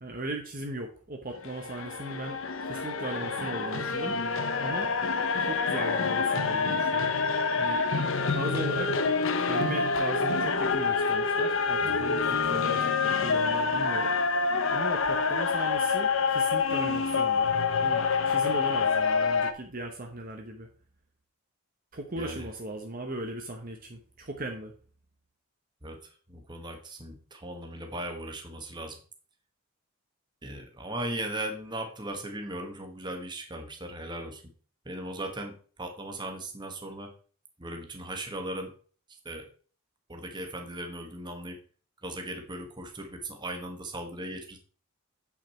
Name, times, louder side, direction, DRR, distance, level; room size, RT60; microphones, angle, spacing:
voice 1, 0.0-2.4 2.6-4.2 4.6-4.9 5.5-7.1 7.6-7.8 8.3-9.0 9.4-14.1 14.7-17.5 17.8-20.7 21.9-24.7, right 1 dB, 40° right, 2 dB, 1.0 m, -37 dB
sound 1, 1.3-19.5, left 4 dB, 60° left, 0.9 m, -27 dB
voice 2, 22.2-22.5 25.8-29.0 30.4-34.5 34.8-37.1 37.6-38.7 39.1-39.5 40.1-41.6 42.0-44.6, right 1 dB, 20° right, 4 dB, 1.4 m, -38 dB
8.3 x 5.9 x 4.4 m, 0.41 s
head